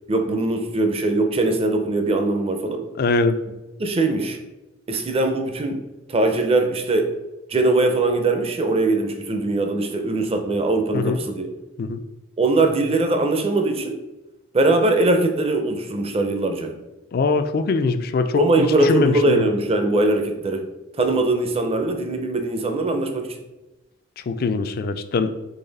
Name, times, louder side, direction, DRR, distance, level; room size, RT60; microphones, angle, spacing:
voice 1, 0.1-2.8 3.8-4.4 4.9-5.8 6.1-7.1 7.5-11.5 12.4-14.0 14.5-16.7 18.4-20.7 21.0-23.3, right 2 dB, 30° right, 5 dB, 0.5 m, -21 dB
voice 2, 3.0-3.4 10.9-11.2 11.8-12.0 17.1-19.5 24.3-25.3, left 3 dB, 50° left, 10 dB, 0.3 m, -22 dB
4.0 x 3.2 x 3.9 m, 1.0 s
head